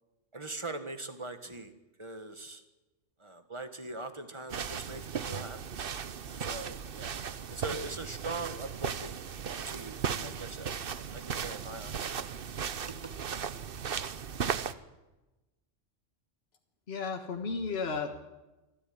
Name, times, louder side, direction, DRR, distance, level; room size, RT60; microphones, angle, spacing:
voice 1, 0.3-1.7 2.0-2.6 3.2-5.6 6.4-7.2 7.5-9.3 9.6-12.5 13.0-13.1, right 2 dB, 25° right, 8 dB, 1.7 m, -42 dB
sound 1, 4.5-14.7, right 7 dB, 50° right, 1.0 m, -36 dB
voice 2, 16.9-18.3, left 4 dB, 55° left, 4 dB, 1.7 m, -34 dB
25.0 x 13.0 x 9.4 m, 1.1 s
omnidirectional pair, 1.3 m